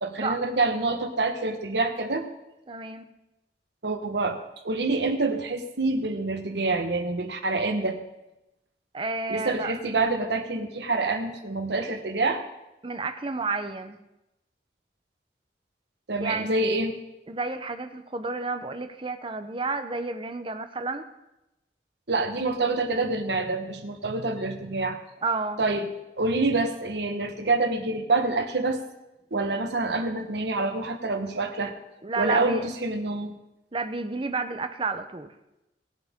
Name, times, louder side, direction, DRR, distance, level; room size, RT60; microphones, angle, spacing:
voice 1, 0.0-2.2 3.8-4.4 4.6-8.0 9.3-12.4 16.1-16.9 22.1-25.0 25.6-25.9 26.2-28.8 29.3-31.7 32.2-33.3, right 3 dB, 75° right, 6 dB, 1.3 m, -26 dB
voice 2, 2.7-3.1 8.9-9.7 12.8-14.0 16.2-16.6 17.3-21.0 25.2-25.6 32.0-32.7 33.7-35.3, right 3 dB, 30° right, 8 dB, 0.7 m, -31 dB
19.0 x 7.8 x 3.7 m, 0.93 s
head